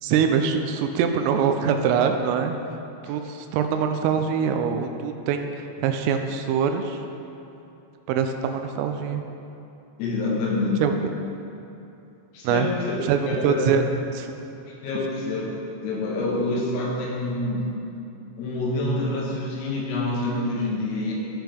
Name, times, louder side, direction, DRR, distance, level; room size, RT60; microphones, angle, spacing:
voice 1, 0.0-2.6 3.0-7.0 8.1-9.2 10.8-10.9 12.4-12.7 13.0-13.8 14.1-14.3, right 7 dB, 85° right, 6 dB, 3.1 m, -24 dB
voice 2, 10.0-10.8 12.3-13.0 13.3-13.7 14.8-15.5 15.8-17.7 18.4-21.1, left 2 dB, 90° left, -3 dB, 4.1 m, -26 dB
15.5 x 5.9 x 3.5 m, 2.8 s
omnidirectional pair, 5.9 m